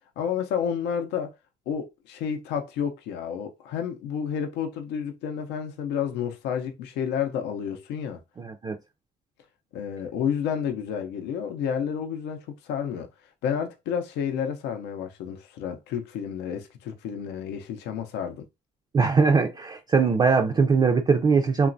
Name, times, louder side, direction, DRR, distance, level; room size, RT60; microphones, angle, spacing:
voice 1, 0.2-1.3 1.7-8.2 9.7-13.1 13.4-18.5, left 8 dB, 85° left, 0.6 m, -30 dB
voice 2, 8.4-8.8 18.9-21.7, right 5 dB, 25° right, 0.4 m, -21 dB
3.0 x 2.2 x 2.6 m
cardioid pair, 110°, 17 cm